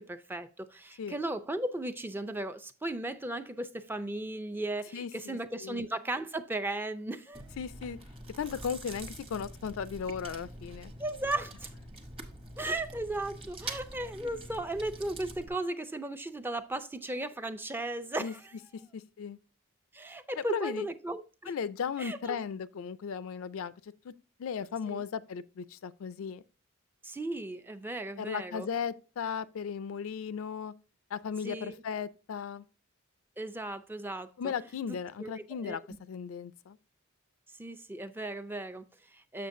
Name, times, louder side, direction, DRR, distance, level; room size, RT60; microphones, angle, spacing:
voice 1, 0.0-7.5 11.0-11.7 12.6-18.5 18.8-18.9 19.9-21.5 22.0-22.4 24.9-25.0 27.0-28.7 31.4-31.8 33.4-34.5 35.2-35.8 37.6-39.5, right 2 dB, 10° right, 0.4 m, -36 dB
voice 2, 4.9-5.9 7.6-8.0 8.4-10.9 18.2-18.3 18.9-19.4 20.4-20.9 21.5-24.1 24.4-26.4 28.2-30.7 31.1-32.6 34.4-36.8, left 6 dB, 75° left, 0.4 m, -36 dB
Chewing mastication, 7.3-15.5, right 2 dB, 25° right, 0.9 m, -45 dB
6.9 x 6.6 x 2.6 m
head